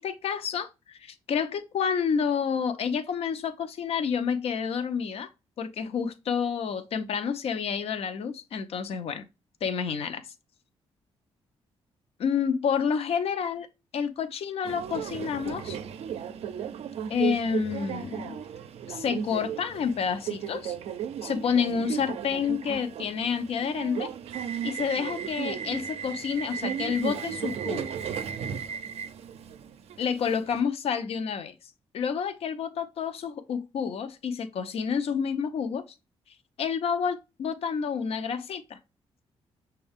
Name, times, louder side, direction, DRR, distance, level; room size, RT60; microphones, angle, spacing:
voice 1, 0.0-5.3 5.6-9.3 9.6-10.2 12.2-13.7 13.9-15.8 17.1-18.4 18.9-20.8 21.2-24.1 24.6-27.9 30.0-31.5 31.9-35.8 36.6-38.8, left 6 dB, 70° left, 0.6 m, -29 dB
Subway metro underground, 14.6-30.6, right 8 dB, 75° right, 0.4 m, -35 dB
6.2 x 2.3 x 3.5 m
cardioid pair, 100°, 11 cm